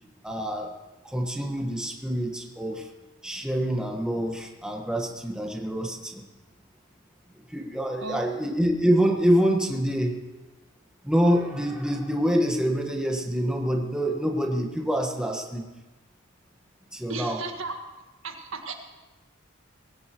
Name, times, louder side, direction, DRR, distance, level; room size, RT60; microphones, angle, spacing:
voice 1, 0.2-0.7 1.0-2.9 3.2-6.2 7.5-10.2 11.0-15.6 16.9-17.4, equal, 5° right, 1 dB, 1.4 m, -26 dB
voice 2, 17.1-17.7 18.2-18.7, right 3 dB, 70° right, 3 dB, 1.7 m, -34 dB
21.5 x 17.0 x 3.0 m, 1.1 s
head